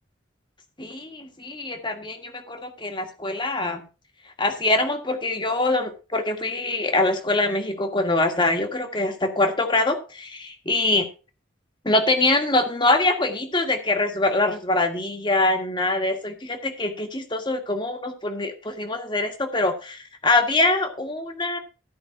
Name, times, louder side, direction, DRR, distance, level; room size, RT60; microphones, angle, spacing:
voice 1, 0.8-3.8 4.4-11.1 11.8-21.6, left 2 dB, 25° left, 6 dB, 1.6 m, -24 dB
13.5 x 5.3 x 5.8 m, 0.34 s
head